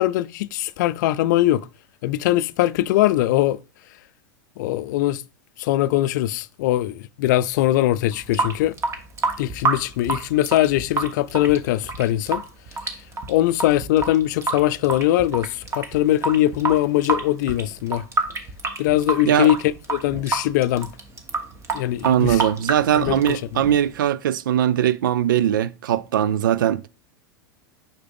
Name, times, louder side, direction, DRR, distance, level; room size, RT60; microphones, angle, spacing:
voice 1, 0.0-1.7 2.0-3.6 4.6-5.2 5.6-8.7 9.4-12.4 13.3-18.0 18.8-19.6 19.9-20.9 21.7-22.4 22.9-23.6, left 14 dB, 65° left, 0.5 m, -21 dB
Water tap faucet / Sink (filling or washing) / Drip, 8.1-24.1, right 3 dB, 25° right, 1.4 m, -28 dB
voice 2, 22.0-26.8, right 10 dB, 80° right, 0.4 m, -20 dB
6.7 x 5.7 x 3.5 m
hypercardioid pair, 105°, 11 cm